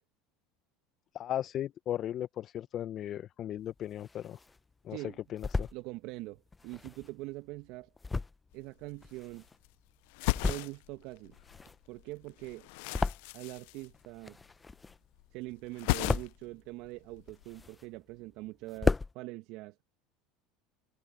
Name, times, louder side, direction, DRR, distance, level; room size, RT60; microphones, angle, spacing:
voice 1, 1.1-4.4 4.8-5.7, left 11 dB, 45° left, 0.9 m, -37 dB
sound 1, 3.6-4.6 5.1-5.8 6.5-9.8 10.2-11.0 11.2-13.7 13.9-15.2 15.5-16.5 17.0-18.1 18.4-18.5 18.7-19.1, left 3 dB, 15° left, 0.9 m, -34 dB
voice 2, 5.7-7.9 8.5-9.4 10.4-11.4 11.9-12.7 13.3-14.4 15.3-19.8, right 20 dB, 65° right, 1.4 m, -43 dB
sound 2, 8.5-8.6 8.8-9.7 10.0-11.7 12.0-14.5 14.7-15.3 15.5-16.6 16.8-17.6, left 25 dB, 70° left, 0.6 m, -36 dB
hypercardioid pair, 85°, 0 cm